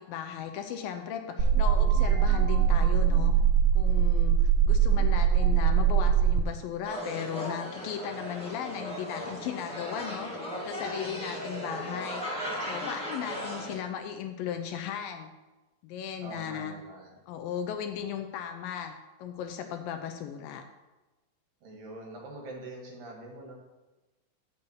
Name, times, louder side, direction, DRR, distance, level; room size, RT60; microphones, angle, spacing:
voice 1, 0.0-3.3 3.7-10.3 10.7-12.2 12.7-15.3 15.8-16.8 17.3-20.6, left 9 dB, 75° left, 6 dB, 2.3 m, -36 dB
sound 1, 1.4-6.4, right 8 dB, 85° right, 2.5 m, -22 dB
sound 2, 6.8-13.8, equal, 5° left, 0.8 m, -37 dB
voice 2, 16.2-17.2 21.6-23.5, right 2 dB, 65° right, 0 dB, 3.3 m, -44 dB
7.1 x 6.8 x 8.0 m, 1.1 s
omnidirectional pair, 4.4 m